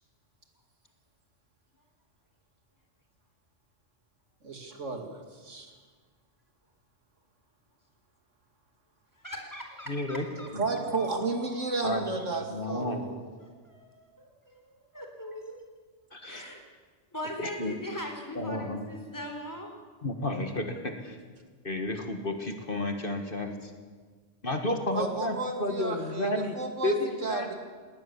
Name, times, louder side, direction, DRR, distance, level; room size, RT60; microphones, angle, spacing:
voice 1, 4.4-5.7 10.4-13.2 24.9-27.0 27.2-27.5, right 3 dB, 80° right, 4 dB, 2.6 m, -33 dB
voice 2, 9.2-11.8 13.4-15.6 16.2-16.6 17.1-19.7, equal, 15° left, 2 dB, 3.8 m, -41 dB
voice 3, 9.9-10.3 10.5-10.6 11.8-12.0 12.5-13.0 16.1-16.4 17.4-17.7 18.4-18.8 20.0-21.2 21.6-23.7 24.4-26.6 26.8-27.5, left 1 dB, 45° left, 5 dB, 1.8 m, -31 dB
19.5 x 19.0 x 7.1 m, 1.5 s
omnidirectional pair, 1.3 m